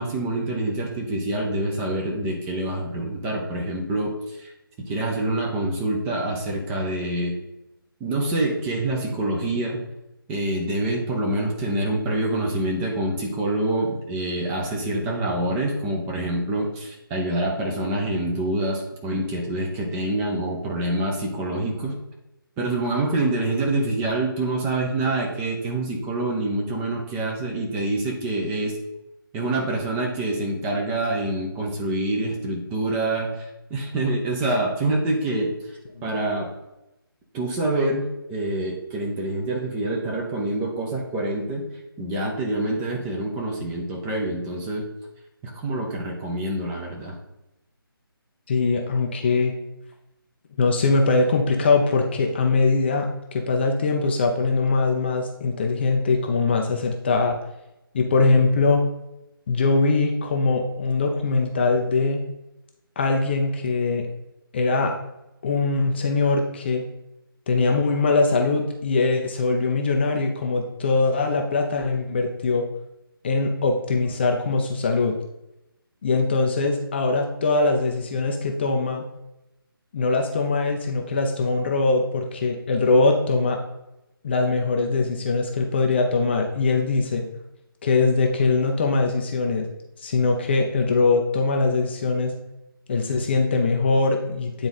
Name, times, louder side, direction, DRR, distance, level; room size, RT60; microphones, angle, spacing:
voice 1, 0.0-4.5 4.8-7.3 8.0-9.8 10.3-22.0 22.6-28.8 29.3-33.4 33.7-35.5 36.0-36.5 37.3-41.7 42.0-44.9 45.4-47.2, right 1 dB, 10° right, -1 dB, 0.8 m, -26 dB
voice 2, 48.5-49.6 50.6-57.4 57.9-58.8 59.5-62.2 63.0-64.1 64.5-64.9 65.4-66.8 67.5-72.6 73.2-75.2 76.0-79.0 79.9-83.6 84.2-87.2 87.8-89.7 90.0-92.3 92.9-94.7, left 3 dB, 30° left, 2 dB, 0.6 m, -22 dB
9.1 x 3.9 x 4.1 m, 0.93 s
figure-of-eight pair, 150°, 12 cm